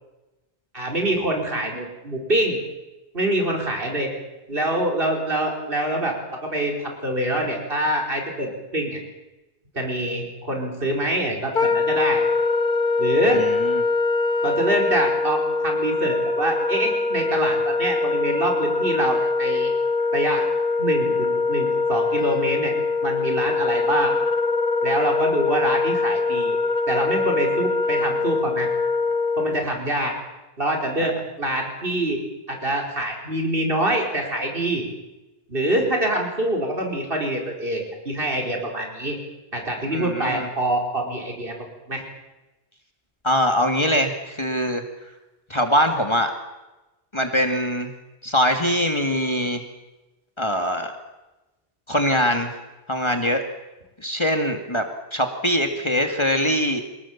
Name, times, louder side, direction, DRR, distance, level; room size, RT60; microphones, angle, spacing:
voice 1, 0.7-2.6 3.1-4.1 4.5-6.1 6.4-9.0 9.7-12.2 13.0-13.4 14.4-19.7 20.1-20.5 20.8-22.7 23.0-24.1 24.8-26.6 26.9-28.7 29.4-30.1 30.6-32.2 32.5-34.8 35.5-39.2 39.5-41.5 41.9-42.0, right 1 dB, 65° right, 1 dB, 4.9 m, -25 dB
Wind instrument woodwind instrument, 11.5-29.7, left 3 dB, 55° left, 1.5 m, -23 dB
voice 2, 13.3-13.8 39.9-40.5 43.2-44.8 45.5-46.3 47.1-47.9 48.2-49.6 50.4-50.9 51.9-52.5 52.9-53.4 54.0-56.8, equal, 25° left, 4 dB, 2.2 m, -22 dB
27.0 x 20.5 x 7.3 m, 1.0 s
omnidirectional pair, 1.0 m